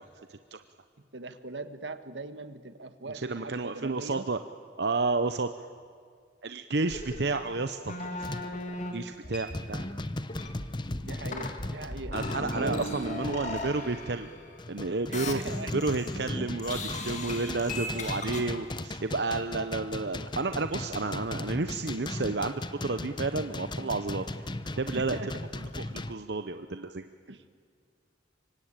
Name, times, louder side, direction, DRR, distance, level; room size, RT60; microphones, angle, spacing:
voice 1, 0.3-0.6 3.1-4.4 4.8-5.5 6.4-8.4 8.9-10.0 12.1-14.3 14.7-15.4 15.7-24.4 24.8-25.2 25.6-27.0, right 3 dB, 70° right, 9 dB, 0.9 m, -31 dB
voice 2, 1.1-4.3 11.0-12.2 12.5-12.8 15.1-15.7 24.9-25.3 27.3-27.4, right 2 dB, 90° right, 10 dB, 1.6 m, -40 dB
sound 1, 6.9-8.9 9.2-9.9 10.3-14.7 15.1-16.3 16.6-18.4, left 2 dB, 40° left, 2.7 m, -38 dB
sound 2, 7.2-7.5 8.2-8.6 9.1-9.2 9.5-13.7 14.3-26.1, left 2 dB, 25° left, 0.8 m, -37 dB
25.5 x 24.0 x 8.9 m, 2.1 s
head